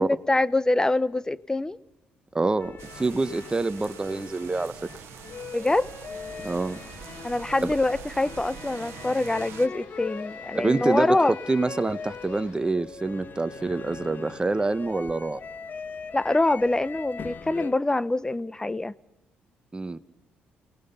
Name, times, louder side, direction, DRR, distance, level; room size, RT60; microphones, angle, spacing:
voice 1, 0.0-1.8 5.5-5.9 7.2-11.4 16.1-18.9, left 2 dB, 15° left, 0.8 m, -25 dB
voice 2, 2.3-4.7 6.4-6.8 7.6-7.7 10.5-11.2 11.5-15.4 19.7-20.0, right 3 dB, 20° right, 1.0 m, -26 dB
sound 1, 2.6-17.8, left 5 dB, 50° left, 0.9 m, -40 dB
sound 2, 2.8-9.7, right 10 dB, 75° right, 0.9 m, -44 dB
sound 3, 6.4-12.6, left 3 dB, 80° left, 5.2 m, -53 dB
28.5 x 19.0 x 5.7 m
supercardioid pair, 60°, 4 cm